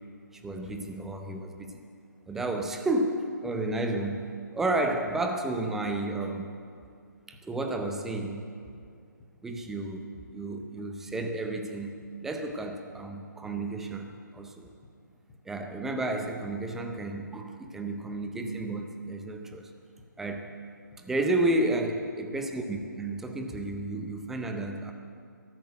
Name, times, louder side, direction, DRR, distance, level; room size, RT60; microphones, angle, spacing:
voice 1, 0.3-1.8 2.3-6.6 7.3-8.5 9.4-14.7 15.4-19.7 20.2-20.5 21.0-24.9, right 2 dB, 5° right, 4 dB, 0.6 m, -32 dB
sound 1, 6.9-8.0 8.3-9.4 9.7-15.5 15.8-23.0 23.3-24.4, left 3 dB, 20° left, 4.5 m, -57 dB
13.5 x 12.0 x 7.9 m, 2.3 s
hypercardioid pair, 165°, 11 cm